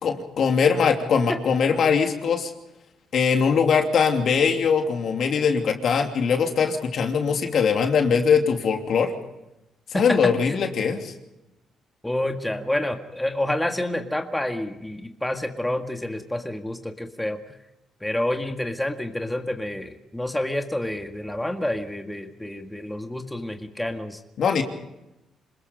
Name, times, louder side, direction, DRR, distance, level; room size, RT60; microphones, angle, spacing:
voice 1, 0.0-2.5 3.1-9.1 9.9-11.1 24.4-24.6, left 6 dB, 60° left, 4 dB, 2.9 m, -21 dB
voice 2, 9.9-10.6 12.0-17.4 18.0-24.2, left 1 dB, 5° left, 5 dB, 1.9 m, -28 dB
27.5 x 20.5 x 5.3 m, 0.92 s
cardioid pair, 90°, 0 cm